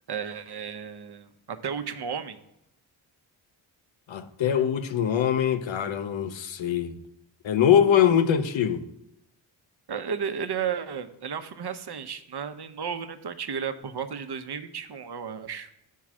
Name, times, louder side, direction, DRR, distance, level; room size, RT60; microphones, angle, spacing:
voice 1, 0.1-2.4 9.9-15.7, right 7 dB, 55° right, 0.9 m, -33 dB
voice 2, 4.1-6.9 7.4-8.8, left 9 dB, 65° left, 0.8 m, -23 dB
7.3 x 4.7 x 6.1 m
cardioid pair, 50°, 49 cm